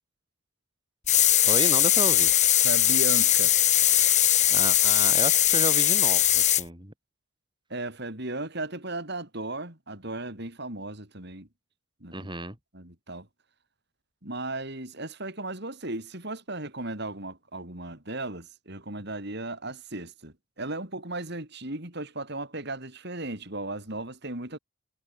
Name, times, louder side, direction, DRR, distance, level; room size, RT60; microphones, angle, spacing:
sound 1, 1.1-6.6, left 12 dB, 35° left, 2.5 m, -20 dB
voice 1, 1.4-2.3 4.5-6.9 12.1-12.6, right 2 dB, 20° right, 6.5 m, -32 dB
voice 2, 2.6-3.5 7.7-11.5 12.0-12.2 12.7-13.3 14.2-24.6, right 2 dB, 55° right, 4.8 m, -36 dB
head